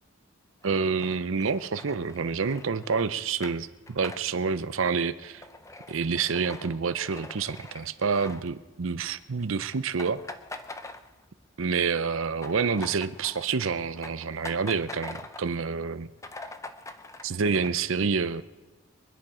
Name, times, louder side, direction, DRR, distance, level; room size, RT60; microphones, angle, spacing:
sound 1, 0.6-9.0 9.3-9.5 9.7-11.5 11.8-15.6 15.9-16.0 16.2-17.7, left 2 dB, 15° left, 0.6 m, -44 dB
voice 1, 0.6-5.4 5.9-10.2 11.6-16.1 17.2-18.4, right 5 dB, 70° right, 14 dB, 0.6 m, -28 dB
23.5 x 10.5 x 4.9 m, 1.2 s
head